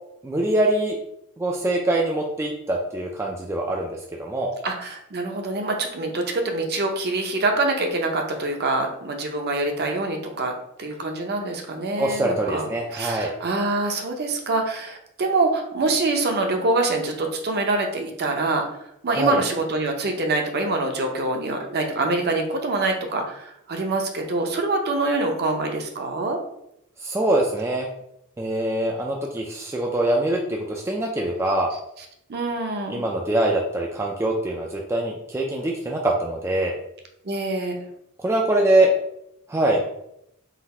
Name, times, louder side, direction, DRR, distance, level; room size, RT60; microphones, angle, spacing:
voice 1, 0.2-1.0 1.4-4.5 12.0-13.3 19.1-19.4 27.0-27.9 28.4-31.7 32.9-36.7 38.2-38.9 39.5-39.9, right 1 dB, 10° right, -1 dB, 0.3 m, -23 dB
voice 2, 4.6-10.5 10.8-12.7 12.9-18.6 19.0-26.4 32.3-33.0 37.2-37.9, right 2 dB, 45° right, 3 dB, 0.7 m, -25 dB
3.9 x 2.5 x 4.2 m, 0.78 s
head